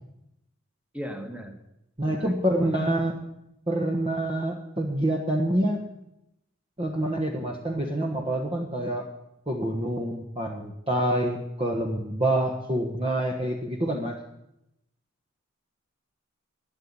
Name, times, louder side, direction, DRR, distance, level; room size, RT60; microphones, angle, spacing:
voice 1, 0.9-1.5 2.1-3.0, equal, 5° right, 5 dB, 1.5 m, -39 dB
voice 2, 2.0-3.2 3.7-5.9 6.8-9.0 9.5-14.2, right 1 dB, 25° right, 1 dB, 1.3 m, -27 dB
12.5 x 9.8 x 8.8 m, 0.84 s
head